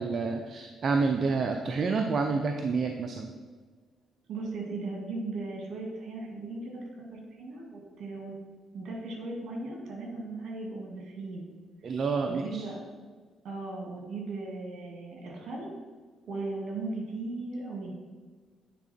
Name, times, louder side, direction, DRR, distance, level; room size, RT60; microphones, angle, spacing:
voice 1, 0.0-3.3 11.8-12.7, right 4 dB, 50° right, 4 dB, 0.5 m, -28 dB
voice 2, 4.3-6.8 7.1-8.3 8.7-11.4 12.3-13.1 13.4-15.7 16.3-17.9, right 3 dB, 70° right, -1 dB, 2.2 m, -37 dB
9.3 x 3.6 x 4.3 m, 1.5 s
cardioid pair, 90°, 0 cm